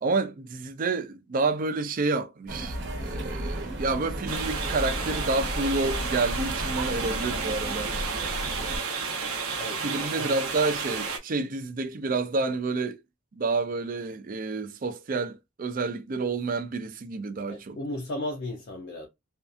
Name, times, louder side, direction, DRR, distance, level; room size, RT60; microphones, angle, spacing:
voice 1, 0.0-7.9 9.1-9.3 9.8-13.0 13.3-17.8, right 3 dB, 40° right, 0.4 m, -29 dB
sound 1, 2.5-8.8, right 1 dB, 55° right, 0.9 m, -33 dB
sound 2, 4.3-11.2, right 5 dB, 85° right, 0.7 m, -32 dB
voice 2, 9.6-10.3 17.5-19.1, left 1 dB, 50° left, 0.5 m, -35 dB
2.6 x 2.3 x 2.4 m
head